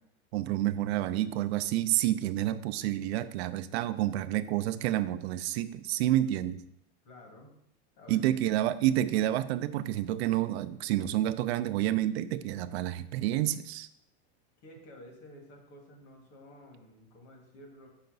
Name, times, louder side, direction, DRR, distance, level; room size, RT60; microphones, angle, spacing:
voice 1, 0.3-6.6 8.1-13.9, right 13 dB, 70° right, 12 dB, 0.5 m, -29 dB
voice 2, 7.0-7.5 8.0-8.4 14.6-17.9, left 1 dB, 45° left, 1 dB, 2.1 m, -52 dB
6.4 x 5.8 x 4.0 m, 0.73 s
supercardioid pair, 150°, 34 cm